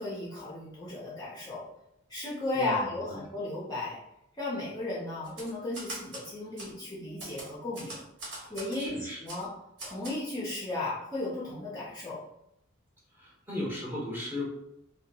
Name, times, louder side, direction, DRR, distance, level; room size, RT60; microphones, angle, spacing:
voice 1, 0.0-1.7 2.1-4.0 4.4-8.0 8.5-8.9 9.2-9.5 9.8-12.2, left 2 dB, 20° left, -7 dB, 0.5 m, -35 dB
voice 2, 2.5-3.3 8.3-9.2 13.1-14.4, left 1 dB, 10° right, -6 dB, 0.8 m, -37 dB
Typewriter, 5.2-6.3 6.6-6.7 7.2-8.8 9.3-9.4 9.8-10.2, right 1 dB, 60° right, 1.1 m, -41 dB
2.8 x 2.2 x 2.8 m, 0.80 s
head